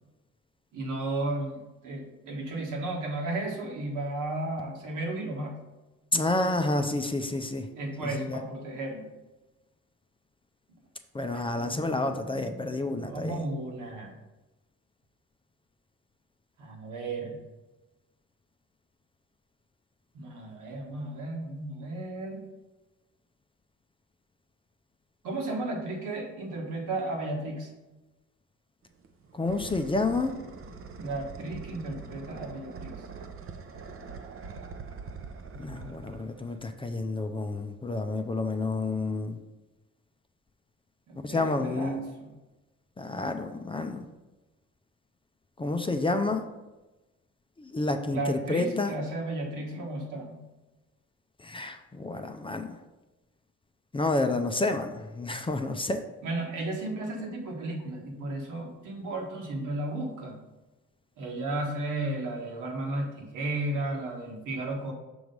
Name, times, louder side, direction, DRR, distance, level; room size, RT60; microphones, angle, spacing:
voice 1, 0.7-5.6 7.8-9.1 11.3-14.1 16.6-17.4 20.1-22.4 25.2-27.7 31.0-33.0 41.1-42.3 48.1-50.4 56.2-60.3 61.2-64.9, right 2 dB, 85° right, 0 dB, 1.5 m, -34 dB
voice 2, 6.1-7.7 8.0-8.4 11.1-13.4 29.3-30.4 35.6-39.4 41.2-42.0 43.0-44.1 45.6-46.4 47.6-48.9 51.4-52.7 53.9-56.0, left 2 dB, 20° left, 6 dB, 0.5 m, -29 dB
sound 1, 28.9-36.8, right 5 dB, 45° right, 0.7 m, -44 dB
6.1 x 3.2 x 5.2 m, 1.1 s
cardioid pair, 90°, 30 cm